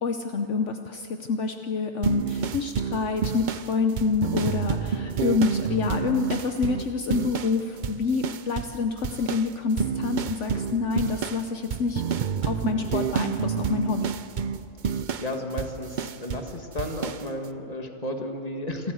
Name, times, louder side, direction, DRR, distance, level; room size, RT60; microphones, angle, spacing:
voice 1, 0.0-12.0 12.4-14.1, left 4 dB, 65° left, 6 dB, 1.1 m, -27 dB
sound 1, 2.0-7.6 7.8-8.8 9.0-16.5 16.8-17.2, right 7 dB, 50° right, 0.6 m, -29 dB
voice 2, 14.8-18.9, left 1 dB, 30° left, 3 dB, 1.9 m, -33 dB
27.5 x 13.5 x 7.9 m, 2.7 s
omnidirectional pair, 1.3 m